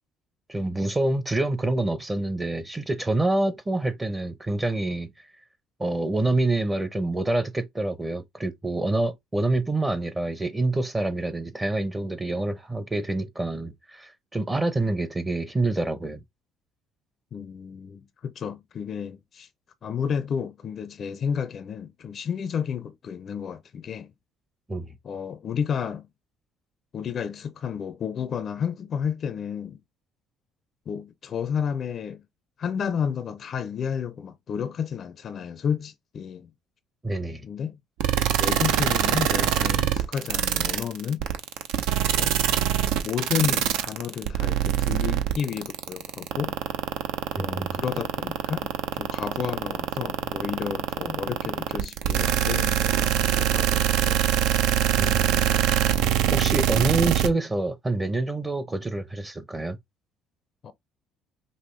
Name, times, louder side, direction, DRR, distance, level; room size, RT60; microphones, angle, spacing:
voice 1, 0.5-5.1 5.8-16.2 24.7-24.9 37.0-37.4 47.3-47.8 55.0-55.4 56.3-59.8, right 2 dB, 20° right, 0.7 m, -27 dB
voice 2, 17.3-19.5 19.8-24.1 25.0-26.1 26.9-29.8 30.9-32.2 32.6-36.5 37.4-37.8 38.4-41.3 42.2-42.3 43.0-46.6 47.4-54.3 60.6-60.7, left 7 dB, 50° left, 0.4 m, -31 dB
sound 1, 38.0-57.3, right 11 dB, 75° right, 0.6 m, -23 dB
5.3 x 2.0 x 3.1 m
supercardioid pair, 70°, 0 cm